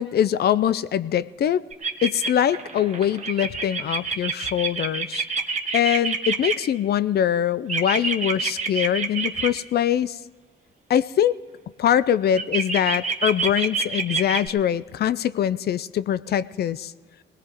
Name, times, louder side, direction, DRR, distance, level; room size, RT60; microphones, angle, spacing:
voice 1, 0.0-1.6 2.0-5.2 5.7-10.1 10.9-11.3 11.8-16.9, left 10 dB, 55° left, 17 dB, 0.5 m, -23 dB
sound 1, 1.7-6.5 7.7-9.5 12.4-14.5, right 4 dB, 35° right, 1.1 m, -26 dB
21.0 x 18.5 x 3.0 m, 1.4 s
cardioid pair, 90°, 20 cm